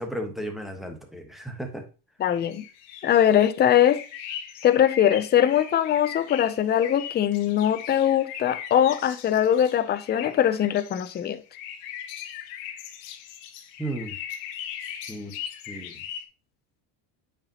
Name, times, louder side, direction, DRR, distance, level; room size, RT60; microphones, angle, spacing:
voice 1, 0.0-1.8 13.8-14.2 15.1-15.3 15.7-16.0, right 1 dB, ahead, 1.2 m, -34 dB
voice 2, 2.2-2.6 3.0-4.0 4.6-11.4, left 10 dB, 20° left, 0.4 m, -21 dB
sound 1, 2.3-16.2, left 9 dB, 70° left, 1.2 m, -39 dB
8.6 x 5.0 x 2.8 m
cardioid pair, 125°, 50 cm